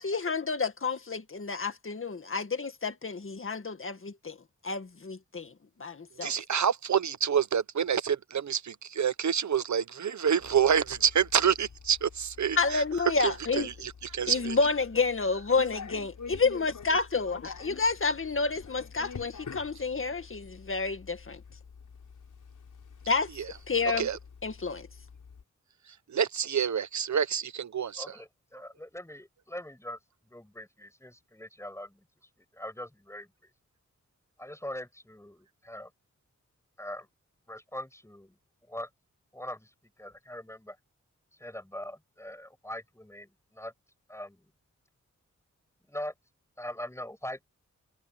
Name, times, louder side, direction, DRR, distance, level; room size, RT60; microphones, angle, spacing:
voice 1, 0.0-4.4 4.6-5.5 5.8-6.3 12.6-13.7 14.3-21.4 23.1-23.3 23.7-24.1 24.4-24.9, left 4 dB, 45° left, 2.0 m, -29 dB
voice 2, 6.2-12.8 13.2-14.6 24.0-24.2 26.1-28.0, right 8 dB, 70° right, 0.9 m, -27 dB
sound 1, 10.4-25.4, left 6 dB, 90° left, 5.7 m, -47 dB
voice 3, 28.0-30.0 30.2-32.0 32.4-33.3 34.4-35.9 36.8-37.1 37.5-38.4 38.7-38.9 39.3-40.8 41.4-43.7 44.1-44.5 45.9-46.1 46.6-47.5, left 1 dB, 10° left, 6.8 m, -42 dB
wide cardioid pair, 90°, 30 cm